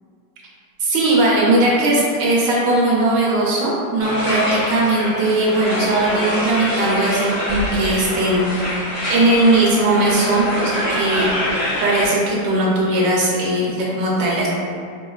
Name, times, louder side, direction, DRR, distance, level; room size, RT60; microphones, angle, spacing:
voice 1, 0.8-8.6 9.1-11.3 11.8-14.5, right 2 dB, 80° right, -5 dB, 1.3 m, -18 dB
sound 1, 4.0-12.1, left 1 dB, 80° left, 2.1 m, -25 dB
4.5 x 2.4 x 2.3 m, 2.3 s
omnidirectional pair, 1.9 m